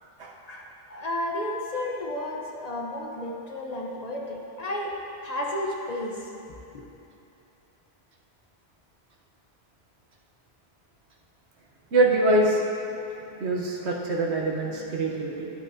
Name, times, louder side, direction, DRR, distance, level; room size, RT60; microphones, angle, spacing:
voice 1, 0.5-4.9 5.2-6.2 6.7-6.8, left 1 dB, 40° left, -2 dB, 1.0 m, -32 dB
voice 2, 11.9-12.7 13.2-15.5, right 2 dB, 85° right, -1 dB, 1.3 m, -24 dB
11.5 x 8.6 x 2.7 m, 2.9 s
omnidirectional pair, 1.1 m